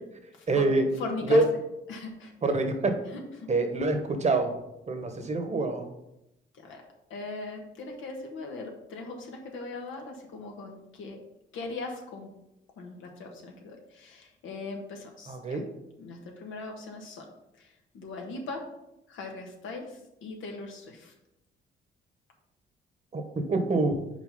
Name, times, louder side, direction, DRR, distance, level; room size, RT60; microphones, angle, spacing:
voice 1, 0.5-0.9 1.2-1.5 2.4-2.9 3.5-4.5 4.9-5.9 15.3-15.6 23.1-24.0, right 2 dB, 35° right, 6 dB, 1.1 m, -26 dB
voice 2, 1.0-1.4 1.9-2.3 3.1-3.5 6.5-6.8 7.1-11.2 11.5-12.3 12.8-15.6 16.0-17.2 17.6-18.6 19.1-21.1, left 3 dB, 80° left, 2 dB, 1.4 m, -39 dB
5.3 x 4.4 x 5.5 m, 0.88 s
cardioid pair, 90°, 20 cm